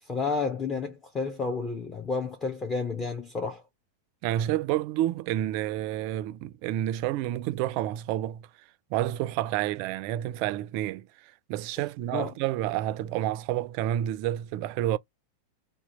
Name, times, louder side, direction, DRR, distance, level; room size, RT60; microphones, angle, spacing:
voice 1, 0.0-3.6 12.1-12.3, left 4 dB, 20° left, 0.7 m, -31 dB
voice 2, 4.2-8.5 8.9-11.1 11.5-15.0, right 13 dB, 45° right, 0.3 m, -29 dB
2.8 x 2.3 x 3.9 m
figure-of-eight pair, 90°, 0 cm